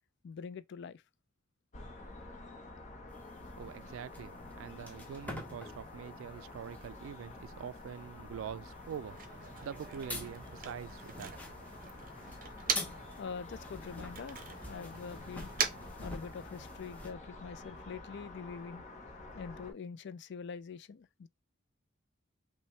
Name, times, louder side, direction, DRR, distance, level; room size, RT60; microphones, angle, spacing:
voice 1, 0.2-1.0 4.7-4.8 13.2-14.4 14.6-15.5 16.0-18.8 19.3-21.3, left 5 dB, 60° left, 0.4 m, -44 dB
sound 1, 1.7-19.7, left 2 dB, 40° left, 0.8 m, -49 dB
sound 2, 3.1-17.1, left 1 dB, 10° left, 0.9 m, -48 dB
voice 2, 3.6-11.3, right 8 dB, 80° right, 0.3 m, -45 dB
Motor vehicle (road), 8.7-13.2 13.5-16.8, right 7 dB, 45° right, 0.7 m, -41 dB
5.4 x 2.2 x 3.2 m
head